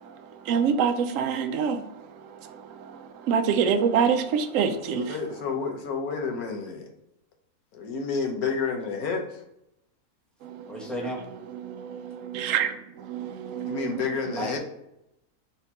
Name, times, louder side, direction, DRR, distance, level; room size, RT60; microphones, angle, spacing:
voice 1, 0.5-1.8 3.3-5.0 12.3-12.7 13.6-13.9, right 7 dB, 70° right, 0.9 m, -24 dB
voice 2, 4.9-6.9 7.7-9.4 13.6-14.6, left 5 dB, 75° left, 1.3 m, -30 dB
voice 3, 10.7-11.2 14.3-14.6, equal, ahead, 0.8 m, -33 dB
4.2 x 2.8 x 4.5 m
omnidirectional pair, 1.6 m